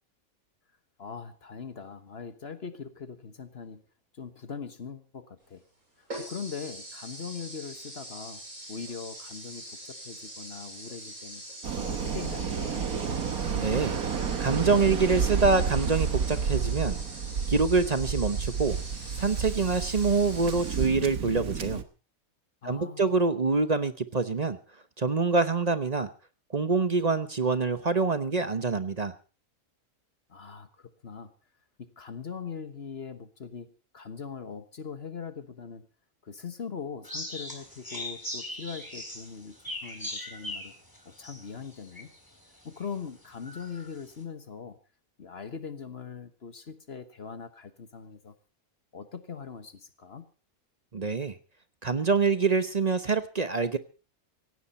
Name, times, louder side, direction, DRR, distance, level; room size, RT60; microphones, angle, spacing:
voice 1, 1.0-3.8 4.1-5.6 6.0-8.4 8.7-11.4 11.8-12.9 22.6-23.1 30.3-31.3 31.8-35.9 36.2-40.7 41.0-42.1 42.6-44.8 45.2-48.3 48.9-50.3, left 6 dB, 50° left, 10 dB, 1.4 m, -41 dB
sound 1, 5.4-5.5 6.1-20.9, right 1 dB, 65° right, 7.6 m, -44 dB
Waves surf, 11.6-21.8, right 6 dB, 90° right, 1.7 m, -30 dB
voice 2, 13.5-14.0 14.4-17.0 17.5-18.8 19.2-21.8 22.6-24.6 25.0-26.1 26.5-29.1 50.9-51.4 51.8-53.8, right 4 dB, 35° right, 11 dB, 0.9 m, -25 dB
sound 2, 37.0-42.3 42.8-42.9 43.4-43.9, left 1 dB, 15° left, 3.8 m, -39 dB
17.0 x 16.5 x 4.2 m, 0.35 s
omnidirectional pair, 1.5 m